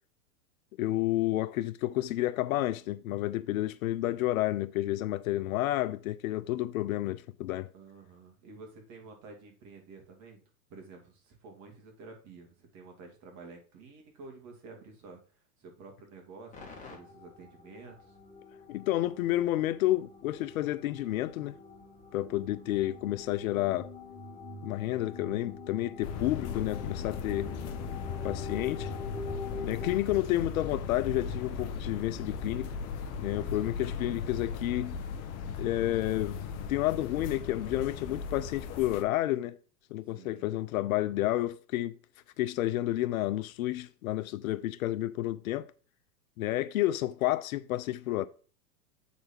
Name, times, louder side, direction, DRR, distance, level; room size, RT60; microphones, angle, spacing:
voice 1, 0.8-7.7 18.7-21.6 22.1-23.9 24.6-27.5 28.2-28.9 29.6-32.7 33.2-35.0 35.6-36.4 36.7-39.6 39.9-41.9 42.4-45.7 46.4-48.3, left 15 dB, 60° left, 0.6 m, -30 dB
voice 2, 7.7-10.4 10.7-18.2 33.2-33.8 40.0-40.5, right 4 dB, 35° right, 2.4 m, -50 dB
sound 1, 16.5-30.0, left 2 dB, 15° left, 1.9 m, -45 dB
sound 2, 26.0-39.0, left 6 dB, 30° left, 1.0 m, -37 dB
7.8 x 4.2 x 4.4 m
hypercardioid pair, 120°, 47 cm